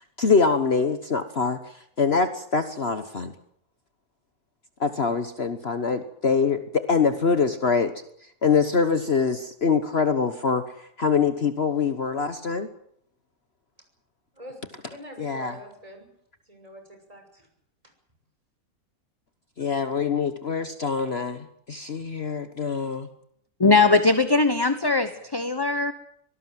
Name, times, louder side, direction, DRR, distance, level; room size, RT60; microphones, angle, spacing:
voice 1, 0.2-1.6 2.0-3.3 4.8-7.9 8.4-10.6 11.0-12.7 15.2-15.5 19.6-23.1, left 5 dB, 45° left, 9 dB, 1.4 m, -24 dB
voice 2, 14.9-16.1 16.5-17.5, equal, 25° right, 4 dB, 6.3 m, -44 dB
voice 3, 23.6-25.9, left 3 dB, 20° left, 10 dB, 1.0 m, -20 dB
24.0 x 18.5 x 7.7 m, 0.70 s
omnidirectional pair, 1.5 m